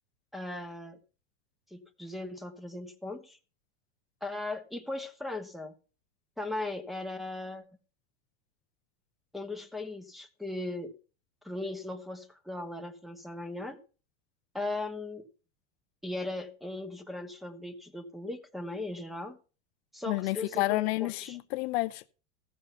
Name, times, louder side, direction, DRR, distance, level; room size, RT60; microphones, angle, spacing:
voice 1, 0.3-1.0 1.7-3.4 4.2-5.7 6.4-7.6 9.3-10.9 11.4-13.8 14.5-15.3 16.0-19.4 19.9-21.4, left 2 dB, ahead, 1.3 m, -38 dB
voice 2, 20.1-22.1, left 20 dB, 60° left, 0.7 m, -30 dB
15.5 x 6.4 x 5.6 m
supercardioid pair, 125°, 36 cm